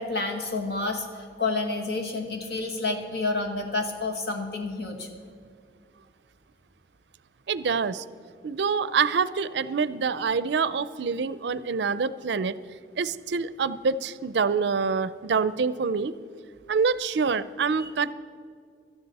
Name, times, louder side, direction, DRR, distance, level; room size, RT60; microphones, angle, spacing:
voice 1, 0.0-5.1 17.8-17.9, left 3 dB, 65° left, 3 dB, 1.7 m, -29 dB
voice 2, 7.5-8.0 8.4-12.5 13.0-16.1 16.7-18.1, right 5 dB, 75° right, 16 dB, 0.4 m, -26 dB
18.0 x 12.5 x 4.1 m, 2.2 s
head